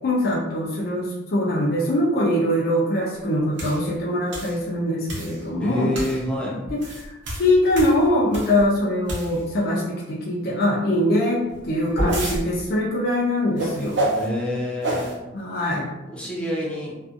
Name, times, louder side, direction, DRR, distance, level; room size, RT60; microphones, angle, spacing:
voice 1, 0.0-6.0 6.7-14.0 15.3-15.9, left 1 dB, 50° left, -4 dB, 0.4 m, -23 dB
sound 1, 3.6-3.8 4.3-4.6 5.1-5.4 5.9-6.2 6.7-8.6 9.0-9.6 11.5-12.4 13.6-14.3 14.8-15.1, right 1 dB, 60° right, 0.7 m, -27 dB
voice 2, 5.6-6.6 14.1-15.1 16.1-16.9, left 1 dB, 5° left, -5 dB, 0.6 m, -27 dB
2.6 x 2.3 x 2.4 m, 1.0 s
head